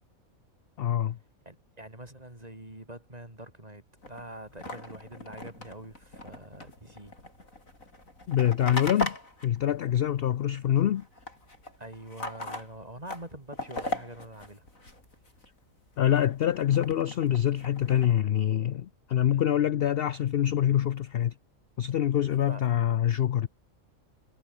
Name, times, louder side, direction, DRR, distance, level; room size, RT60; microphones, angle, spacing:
voice 1, 0.8-1.2 8.3-9.2 9.4-11.1 16.0-21.3 21.8-23.5, left 11 dB, 60° left, 0.7 m, -25 dB
voice 2, 1.4-7.1 11.8-14.7 19.3-19.7 22.4-22.7, right 1 dB, 30° right, 5.1 m, -45 dB
sound 1, 4.0-10.6 10.8-15.5 15.9-18.1, left 2 dB, 75° left, 7.3 m, -39 dB
omnidirectional pair, 1.4 m